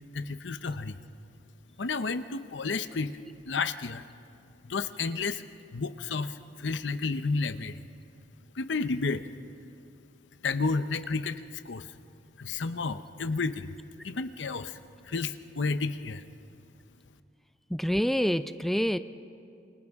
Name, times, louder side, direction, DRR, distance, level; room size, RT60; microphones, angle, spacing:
voice 1, 0.1-1.0 1.8-3.2 3.5-4.1 4.6-5.4 5.7-7.8 8.5-9.2 10.4-11.9 12.4-13.7 14.0-14.8 15.1-16.2, left 4 dB, 90° left, 11 dB, 0.7 m, -31 dB
voice 2, 17.7-19.0, equal, ahead, 11 dB, 0.4 m, -26 dB
28.0 x 25.5 x 3.6 m, 2.5 s
head